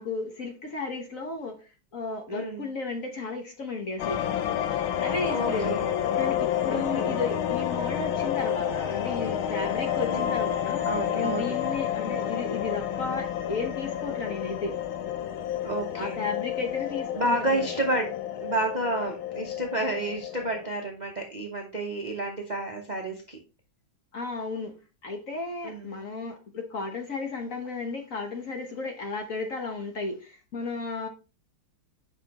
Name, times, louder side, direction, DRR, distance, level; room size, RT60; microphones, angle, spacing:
voice 1, 0.0-4.4 5.0-5.8 6.1-10.8 11.1-14.7 15.9-17.7 24.1-24.7 25.0-31.1, left 3 dB, 50° left, 1.2 m, -34 dB
voice 2, 2.3-2.7 5.3-6.0 6.7-7.2 10.0-10.3 10.9-11.6 15.6-16.3 17.1-23.4 25.6-26.0, right 2 dB, 40° right, 0.6 m, -30 dB
sound 1, 4.0-20.7, left 10 dB, 80° left, 1.5 m, -30 dB
8.2 x 5.6 x 2.9 m
omnidirectional pair, 2.2 m